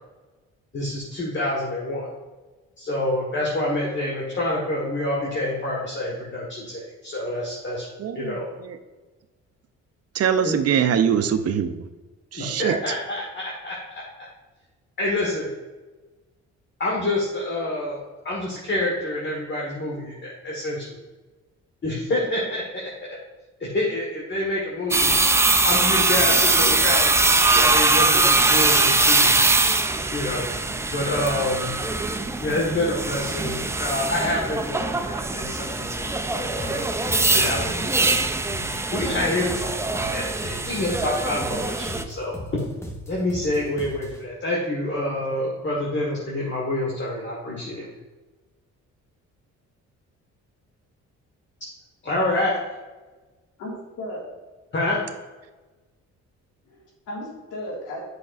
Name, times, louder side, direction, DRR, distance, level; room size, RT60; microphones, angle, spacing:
voice 1, 0.7-2.1 2.8-7.9 8.1-8.5 10.4-10.5 12.3-14.0 15.0-15.5 16.8-18.0 18.2-21.0 21.8-22.8 23.6-25.2 25.6-27.2 27.5-29.4 30.1-30.4 30.9-31.7 32.4-36.1 36.3-36.9 37.3-38.1 38.9-42.3 43.1-47.9 52.0-52.6 54.7-55.0, left 1 dB, 40° left, -4 dB, 1.5 m, -27 dB
voice 2, 8.0-8.8 10.1-11.8 12.3-12.9, right 8 dB, 55° right, 9 dB, 0.6 m, -23 dB
sound 1, 24.9-42.0, right 3 dB, 10° right, 0.4 m, -22 dB
sound 2, 36.6-44.2, left 1 dB, 10° left, 1.2 m, -38 dB
voice 3, 53.6-54.2 56.7-58.0, left 1 dB, 90° left, -2 dB, 2.1 m, -35 dB
7.9 x 5.8 x 2.5 m, 1.2 s
cardioid pair, 90°, 30 cm